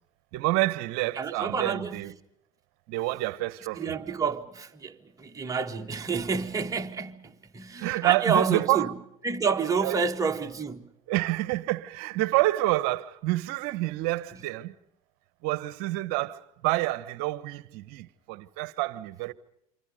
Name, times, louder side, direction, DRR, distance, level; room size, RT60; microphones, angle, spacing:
voice 1, 0.3-2.1 2.9-4.0 7.8-8.9 9.8-10.0 11.1-14.7 15.4-19.3, right 18 dB, 60° right, 1.1 m, -28 dB
voice 2, 1.2-2.0 3.8-8.9 9.2-10.9, right 5 dB, 20° right, 1.9 m, -29 dB
28.5 x 24.5 x 5.2 m
hypercardioid pair, 85°, 19 cm